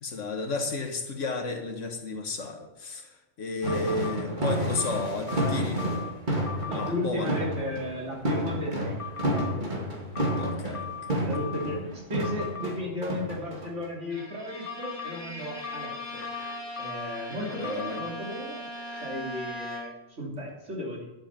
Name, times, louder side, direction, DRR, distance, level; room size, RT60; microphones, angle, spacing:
voice 1, 0.0-3.1 3.4-5.9 6.7-7.4 10.2-11.2 17.5-18.0, left 3 dB, 75° left, 4 dB, 1.7 m, -33 dB
sound 1, 3.6-14.1, right 1 dB, 40° right, 2.5 m, -30 dB
sound 2, 3.7-4.2 4.8-6.1 6.5-6.9 9.0-9.5 10.1-11.8 12.2-12.7 14.7-15.1 15.6-17.2 17.6-18.1, left 8 dB, 40° left, 0.5 m, -38 dB
voice 2, 6.7-9.0 9.3-9.8 11.2-16.2 16.8-18.7 18.9-21.0, left 1 dB, 70° right, -3 dB, 3.3 m, -35 dB
Bowed string instrument, 14.1-20.2, equal, 20° left, 1.8 m, -40 dB
11.0 x 7.9 x 5.9 m, 1.0 s
omnidirectional pair, 1.3 m